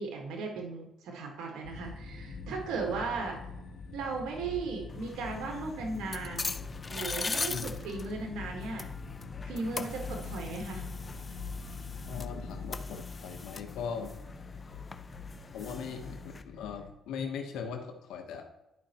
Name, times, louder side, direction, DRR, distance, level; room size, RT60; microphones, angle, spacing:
voice 1, 0.0-3.4 3.9-6.5 6.9-8.9 9.4-10.8, right 4 dB, 85° right, 1 dB, 1.5 m, -36 dB
sound 1, 1.6-16.9, left 4 dB, 70° left, 1.5 m, -44 dB
sound 2, 4.9-16.4, left 4 dB, 30° left, 0.4 m, -41 dB
voice 2, 12.0-14.1 15.5-18.4, left 6 dB, 90° left, 4 dB, 1.0 m, -39 dB
11.5 x 5.2 x 2.9 m, 0.98 s
cardioid pair, 90°, 0 cm